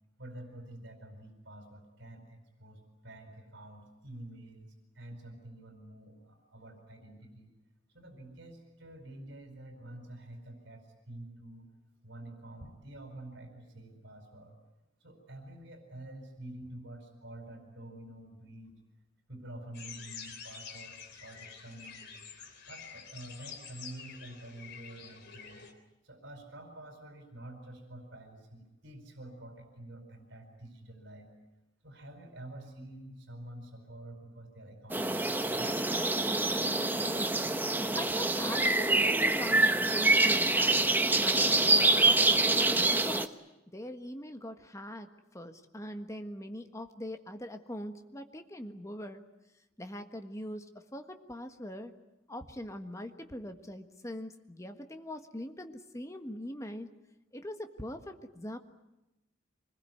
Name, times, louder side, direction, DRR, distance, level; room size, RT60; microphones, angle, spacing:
voice 1, 0.2-4.7 4.9-7.5 7.9-11.7 12.0-14.6 15.0-18.8 19.3-22.2 22.7-25.7 26.0-31.3 31.8-35.7, right 1 dB, 65° right, 6 dB, 4.8 m, -48 dB
sound 1, 19.7-25.7, left 6 dB, 60° left, 3.6 m, -48 dB
sound 2, 34.9-43.3, right 2 dB, 10° right, 1.0 m, -26 dB
voice 2, 36.6-37.4 38.0-40.8 41.2-43.3 43.7-49.2 49.8-51.9 52.3-56.9 57.3-58.6, left 1 dB, 15° left, 6 dB, 1.5 m, -42 dB
25.5 x 20.5 x 9.4 m, 0.96 s
head